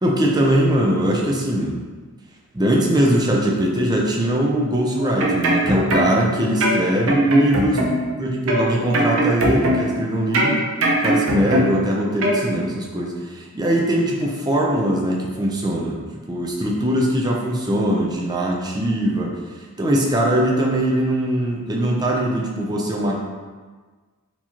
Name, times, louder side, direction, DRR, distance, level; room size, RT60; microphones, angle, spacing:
voice 1, 0.0-1.8 2.5-7.8 8.2-10.6 11.0-19.3 19.8-23.1, right 1 dB, 20° right, -2 dB, 0.5 m, -21 dB
sound 1, 5.0-6.3 6.6-8.1 8.5-10.0 10.3-11.9 12.2-12.4, right 1 dB, 60° right, 0.7 m, -20 dB
4.4 x 2.9 x 2.9 m, 1.4 s
head